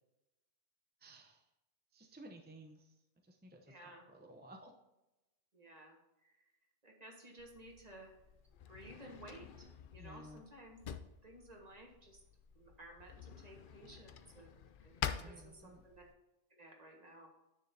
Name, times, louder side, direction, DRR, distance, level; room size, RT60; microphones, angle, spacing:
voice 1, 1.0-1.5 1.9-4.7 10.0-10.4 15.1-15.8, right 1 dB, 10° right, 3 dB, 0.5 m, -56 dB
voice 2, 3.7-4.0 5.5-6.0 6.8-8.1 8.7-9.7 9.9-10.8 11.2-12.2 12.5-16.0 16.5-17.3, right 1 dB, 35° right, 0 dB, 1.6 m, -55 dB
Drawer open or close, 7.4-16.1, left 8 dB, 55° left, 0.6 m, -47 dB
9.6 x 6.8 x 2.7 m, 0.98 s
omnidirectional pair, 1.2 m